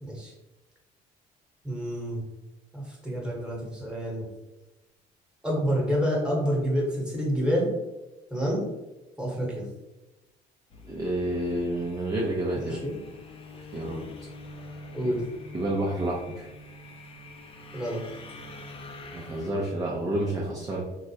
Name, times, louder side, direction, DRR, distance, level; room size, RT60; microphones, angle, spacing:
voice 1, 0.0-0.3 1.6-2.2 2.7-4.3 5.4-7.7 8.3-8.6 9.2-9.6 12.6-13.0 14.9-15.2 17.7-18.0, equal, 5° right, -3 dB, 1.1 m, -28 dB
sound 1, 10.7-19.5, left 2 dB, 35° left, 0.5 m, -45 dB
voice 2, 10.9-12.8 13.7-14.0 15.0-15.1 15.5-16.5 19.1-20.8, right 1 dB, 20° right, -3 dB, 0.5 m, -29 dB
3.7 x 2.1 x 2.7 m, 1.0 s
cardioid pair, 110°, 17 cm